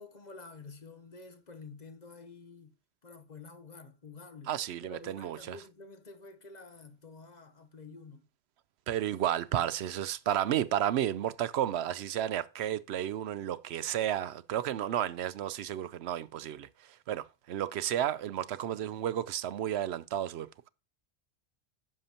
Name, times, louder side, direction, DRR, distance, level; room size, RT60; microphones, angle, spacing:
voice 1, 0.0-2.7 3.0-4.5 4.8-8.2, left 4 dB, 45° left, 1.1 m, -49 dB
voice 2, 4.5-5.6 8.9-16.7 17.1-20.7, right 11 dB, 80° right, 0.8 m, -32 dB
10.5 x 6.6 x 2.9 m
omnidirectional pair, 1.1 m